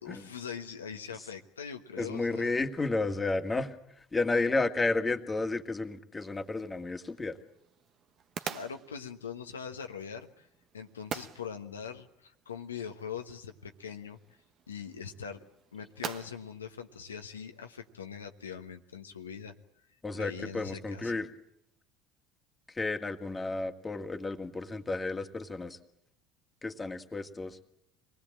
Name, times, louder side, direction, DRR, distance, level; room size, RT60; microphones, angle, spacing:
voice 1, 0.0-2.5 8.4-10.5 10.7-14.2 14.7-15.4 15.7-19.5 20.2-21.1, left 7 dB, 90° left, 5 dB, 1.2 m, -42 dB
voice 2, 2.0-7.4 20.0-21.3 22.7-25.8 26.6-27.6, left 3 dB, 20° left, 5 dB, 2.0 m, -32 dB
sound 1, 6.2-17.9, right 8 dB, 50° right, 1.2 m, -47 dB
26.0 x 20.0 x 8.8 m, 0.76 s
hypercardioid pair, 70°, 0 cm